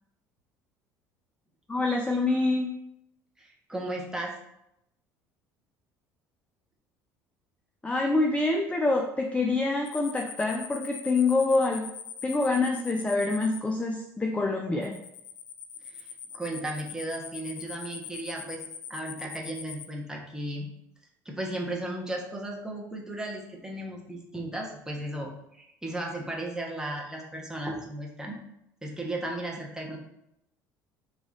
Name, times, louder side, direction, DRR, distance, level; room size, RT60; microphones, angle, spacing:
voice 1, 1.7-2.7 7.8-11.9 12.2-15.0, left 3 dB, 10° left, 2 dB, 0.5 m, -26 dB
voice 2, 3.4-4.3 15.9-16.1 16.3-18.6 18.9-20.7 21.2-28.4 28.8-30.0, right 1 dB, 5° right, -2 dB, 1.2 m, -35 dB
sound 1, 9.9-13.6 14.8-19.9, left 8 dB, 75° left, 0.5 m, -41 dB
3.9 x 2.9 x 4.0 m, 0.81 s
hypercardioid pair, 70°, 10 cm